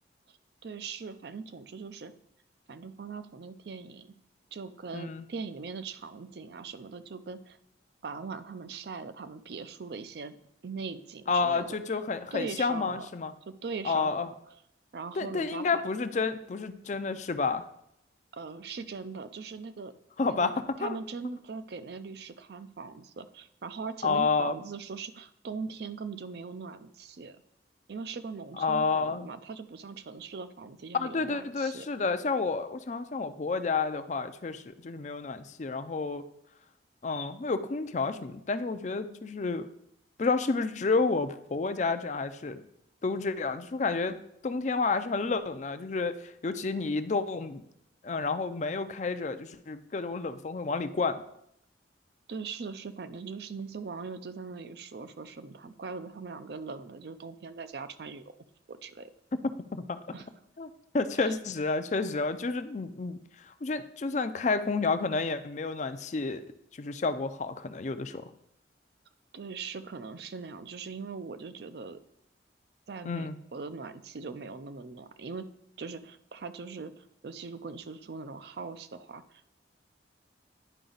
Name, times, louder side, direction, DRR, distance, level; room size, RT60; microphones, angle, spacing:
voice 1, 0.6-2.1 2.7-4.1 4.5-7.6 8.0-10.4 10.6-11.8 12.3-13.1 13.5-14.3 14.9-15.8 18.3-19.9 20.2-20.5 20.8-27.4 27.9-31.9 52.3-58.3 58.7-59.1 60.1-60.3 61.1-61.3 69.3-72.0 72.9-75.5 75.8-79.6, right 4 dB, 60° right, 11 dB, 0.4 m, -40 dB
voice 2, 4.9-5.2 11.3-13.3 13.8-14.3 15.2-17.6 20.2-21.0 24.0-24.6 28.6-29.3 30.9-36.2 37.0-39.6 40.2-42.6 43.0-44.2 44.4-47.6 48.0-51.2 59.7-60.0 60.6-60.7 60.9-63.2 63.6-66.4 66.7-68.2 73.0-73.4, left 4 dB, 40° left, 10 dB, 0.4 m, -30 dB
10.0 x 5.0 x 3.9 m, 0.75 s
head